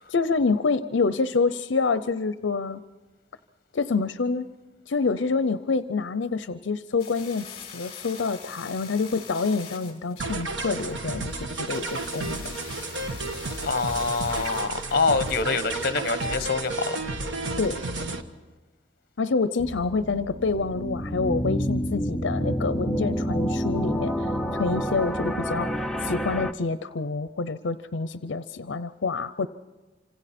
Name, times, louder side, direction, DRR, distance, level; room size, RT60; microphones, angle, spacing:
voice 1, 0.1-2.8 3.7-4.5 4.9-12.5 17.6-17.8 19.2-29.5, left 4 dB, 80° left, 13 dB, 0.6 m, -27 dB
sound 1, 7.0-16.4, left 6 dB, 30° left, 3.4 m, -44 dB
sound 2, 10.2-18.2, right 2 dB, 80° right, 1.3 m, -32 dB
voice 2, 13.6-17.0, left 4 dB, 50° left, 11 dB, 1.0 m, -25 dB
sound 3, 19.6-26.5, equal, ahead, 0.6 m, -28 dB
28.0 x 26.5 x 4.3 m, 1.3 s
head